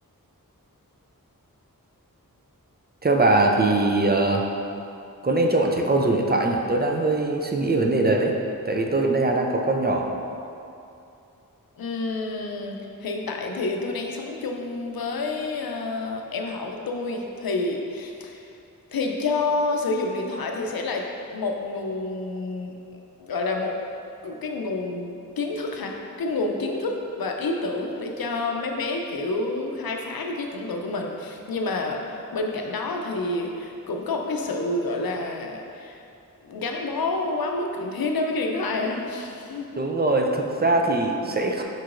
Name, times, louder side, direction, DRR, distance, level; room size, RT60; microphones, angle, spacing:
voice 1, 3.0-4.5 5.2-8.4 8.7-10.2 39.8-41.6, right 2 dB, 30° right, 1 dB, 0.4 m, -22 dB
voice 2, 11.8-18.5 18.9-22.7 23.2-23.8 24.2-36.0 36.4-39.8, left 3 dB, 85° left, 2 dB, 0.5 m, -29 dB
4.6 x 4.6 x 2.5 m, 2.6 s
wide cardioid pair, 40°, 35 cm